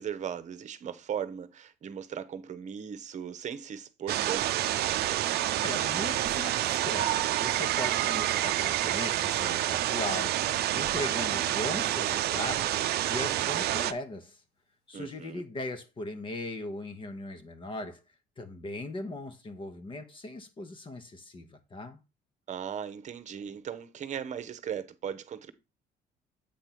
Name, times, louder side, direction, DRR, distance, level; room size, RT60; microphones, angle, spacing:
voice 1, 0.0-4.6 14.9-15.4 22.5-25.5, right 8 dB, 45° right, 1.0 m, -38 dB
sound 1, 4.1-13.9, right 13 dB, 70° right, 0.6 m, -28 dB
voice 2, 5.6-14.4 14.9-18.0 18.4-22.0, left 2 dB, 30° left, 1.1 m, -39 dB
sound 2, 7.2-13.2 15.2-15.4, left 2 dB, 85° left, 5.6 m, -51 dB
8.5 x 3.4 x 5.9 m
cardioid pair, 110°, 17 cm